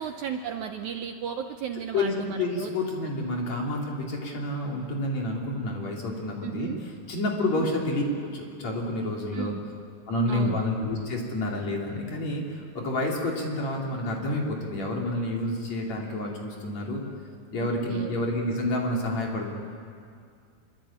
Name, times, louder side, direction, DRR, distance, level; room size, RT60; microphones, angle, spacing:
voice 1, 0.0-2.7 6.4-6.8 7.4-7.7 9.3-9.6 10.3-10.6 17.6-18.1, right 8 dB, 75° right, 6 dB, 1.8 m, -34 dB
voice 2, 1.9-6.7 7.1-9.5 10.1-17.0 17.5-19.5, left 1 dB, 45° left, -1 dB, 4.5 m, -29 dB
25.5 x 24.0 x 8.9 m, 2.3 s
omnidirectional pair, 4.5 m